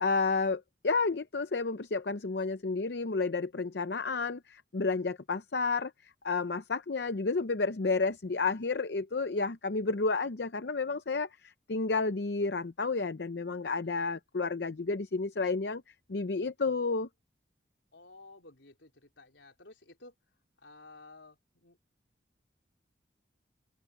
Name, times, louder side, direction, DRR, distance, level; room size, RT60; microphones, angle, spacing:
voice 1, 0.0-15.8 16.1-17.1, left 4 dB, 65° left, 0.7 m, -31 dB
voice 2, 17.9-20.1 20.6-21.8, left 2 dB, 80° left, 4.1 m, -54 dB
open air
head